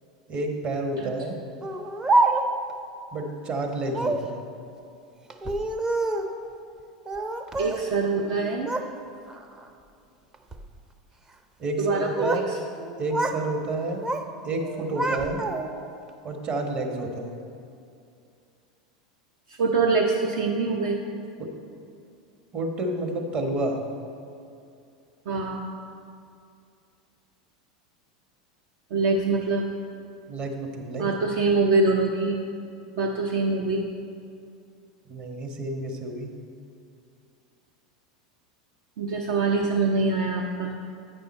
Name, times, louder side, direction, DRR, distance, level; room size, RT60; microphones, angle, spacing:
voice 1, 0.3-1.4 3.1-4.4 11.6-12.5 13.0-14.1 14.4-15.4 16.2-17.4 21.4-21.5 22.5-23.8 30.3-31.1 35.1-36.3, right 2 dB, 40° right, 2 dB, 1.2 m, -30 dB
Speech, 1.6-2.7 3.9-4.3 5.3-6.4 7.1-7.9 8.2-8.9 9.3-9.7 10.3-10.7 11.8-12.5 12.8-13.4 13.7-14.3 14.6-15.9, right 2 dB, 20° right, 0.6 m, -27 dB
voice 2, 7.6-8.7 11.8-12.4 19.5-21.0 25.3-25.7 28.9-29.6 31.0-32.4 33.0-33.9 39.0-40.7, right 3 dB, 65° right, 2 dB, 0.5 m, -24 dB
8.9 x 5.5 x 4.3 m, 2.5 s
hypercardioid pair, 90°, 3 cm